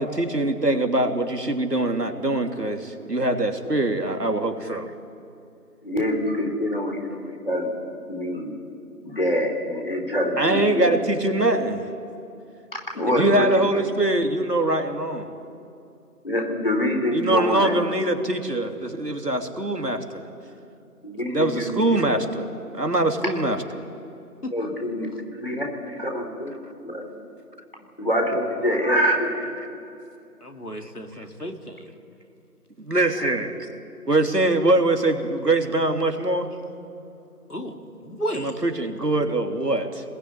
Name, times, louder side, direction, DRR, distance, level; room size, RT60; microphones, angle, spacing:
voice 1, 0.0-4.9 10.4-11.8 13.1-15.3 17.1-20.2 21.3-22.5 22.7-23.8 31.1-31.2 32.8-33.5 34.1-36.5 38.3-40.0, right 2 dB, 85° right, 5 dB, 3.2 m, -23 dB
voice 2, 5.8-8.5 9.0-11.0 12.9-13.5 16.2-17.7 21.0-22.0 24.5-25.1 25.3-25.7 26.0-26.5 26.8-27.1 28.0-29.3 33.2-33.3, equal, 35° left, 2 dB, 4.1 m, -25 dB
voice 3, 30.4-31.8 37.5-37.7 38.0-38.6, equal, 75° left, 4 dB, 3.1 m, -33 dB
25.0 x 20.5 x 9.9 m, 2.6 s
figure-of-eight pair, 180°, 46 cm